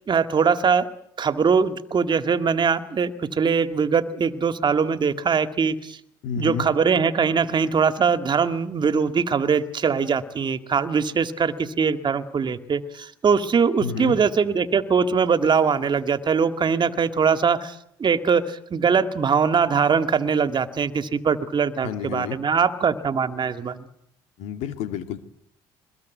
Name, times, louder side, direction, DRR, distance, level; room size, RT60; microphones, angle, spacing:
voice 1, 0.1-0.9 1.2-6.0 6.4-23.9, right 6 dB, 40° right, 9 dB, 2.1 m, -22 dB
voice 2, 6.2-6.7 13.8-14.2 21.8-22.4 24.4-25.2, left 7 dB, 75° left, 8 dB, 2.4 m, -30 dB
23.5 x 21.5 x 9.4 m, 0.73 s
hypercardioid pair, 65°, 12 cm